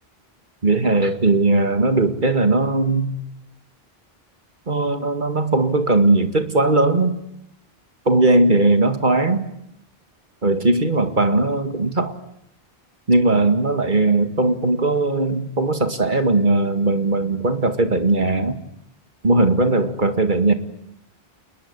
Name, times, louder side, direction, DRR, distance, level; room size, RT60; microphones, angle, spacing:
voice 1, 0.6-3.2 4.7-7.2 8.1-9.5 10.4-12.1 13.1-18.6 19.2-20.5, right 2 dB, 50° right, 8 dB, 2.3 m, -18 dB
29.0 x 21.5 x 9.8 m, 0.79 s
omnidirectional pair, 1.1 m